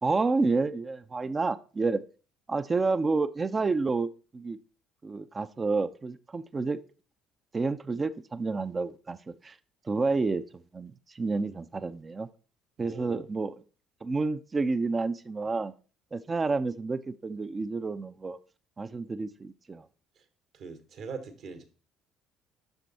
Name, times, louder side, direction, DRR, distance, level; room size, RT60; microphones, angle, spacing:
voice 1, 0.0-2.0 2.5-4.6 5.0-6.8 7.5-9.6 9.8-12.3 12.8-13.5 14.0-15.7 16.1-18.4 18.8-19.9, right 3 dB, 30° right, 14 dB, 0.5 m, -29 dB
voice 2, 12.8-13.2 20.5-21.6, right 5 dB, 55° right, 9 dB, 1.5 m, -41 dB
7.9 x 6.0 x 4.1 m, 0.38 s
hypercardioid pair, 55°, 0 cm